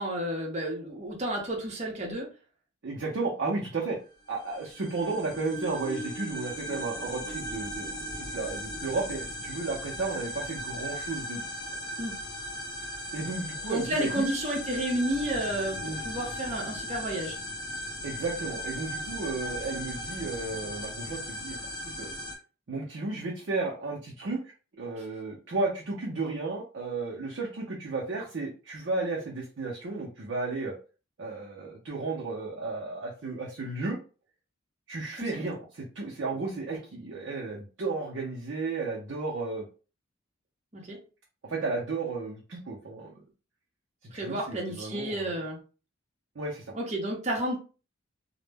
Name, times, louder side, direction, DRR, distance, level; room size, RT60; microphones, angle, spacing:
voice 1, 0.0-2.3 12.0-12.2 13.7-17.4 35.3-35.5 40.7-41.0 44.1-45.6 46.7-47.6, right 1 dB, 35° right, -1 dB, 0.8 m, -31 dB
voice 2, 2.8-4.0 4.3-8.0 8.3-11.4 13.1-14.3 15.8-16.0 18.0-21.6 22.0-22.1 22.7-30.7 31.2-34.0 34.9-39.7 41.4-43.2 44.0-45.3 46.3-46.7, right 3 dB, 60° right, -3 dB, 0.5 m, -33 dB
sound 1, 4.3-22.3, equal, 20° left, 0.5 m, -37 dB
2.1 x 2.1 x 3.3 m, 0.35 s
head